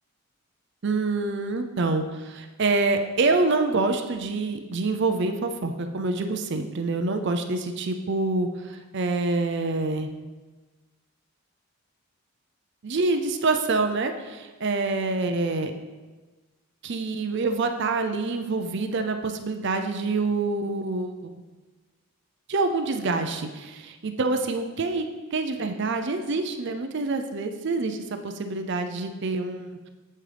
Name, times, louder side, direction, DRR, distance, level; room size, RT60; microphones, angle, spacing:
voice 1, 0.8-10.1 12.8-15.7 16.8-21.3 22.5-25.1 25.3-29.9, right 3 dB, 55° right, 6 dB, 0.5 m, -26 dB
8.4 x 7.6 x 3.4 m, 1.3 s
head